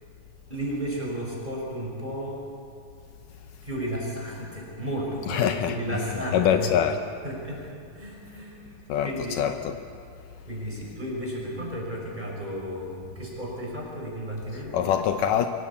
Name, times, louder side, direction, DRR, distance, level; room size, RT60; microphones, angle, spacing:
voice 1, 0.5-2.5 3.6-6.9 7.2-7.6 7.9-9.5 10.5-15.0, equal, 10° right, 5.5 m, -33 dB
voice 2, 5.3-5.8 6.3-7.0 8.9-9.1 9.4-9.8 14.7-15.5, left 9 dB, 75° left, 2.3 m, -23 dB
24.5 x 17.5 x 8.5 m
omnidirectional pair, 4.0 m